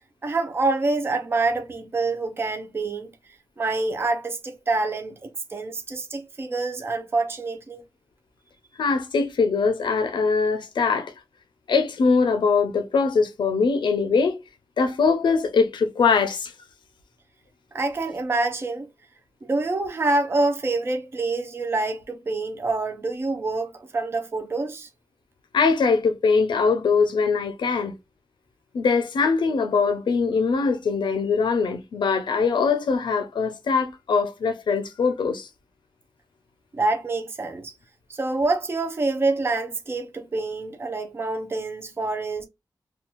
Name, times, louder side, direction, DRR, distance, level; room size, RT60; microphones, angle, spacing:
voice 1, 0.2-3.1 3.6-7.8 17.7-18.9 19.4-24.9 36.7-37.7 38.1-42.5, right 3 dB, 30° right, 0.4 m, -26 dB
voice 2, 8.8-11.1 11.7-14.4 14.8-16.5 25.5-27.9 28.7-35.5, left 5 dB, 90° left, 0.5 m, -22 dB
2.6 x 2.3 x 2.9 m
wide cardioid pair, 115°, 8 cm